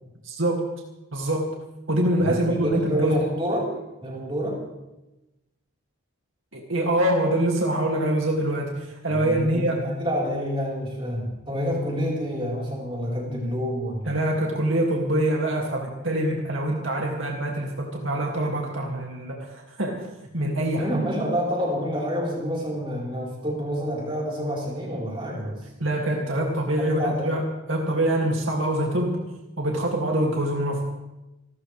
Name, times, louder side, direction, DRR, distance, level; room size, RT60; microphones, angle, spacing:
voice 1, 0.2-0.6 1.1-1.5 1.9-3.2 6.5-9.8 14.1-20.0 20.3-21.1 25.8-29.2 29.6-30.8, right 1 dB, 70° right, 0 dB, 2.4 m, -25 dB
voice 2, 2.2-3.7 4.0-4.6 9.1-14.1 20.8-25.6 26.8-27.3, equal, 25° right, -3 dB, 4.3 m, -28 dB
27.5 x 13.5 x 3.4 m, 0.98 s
head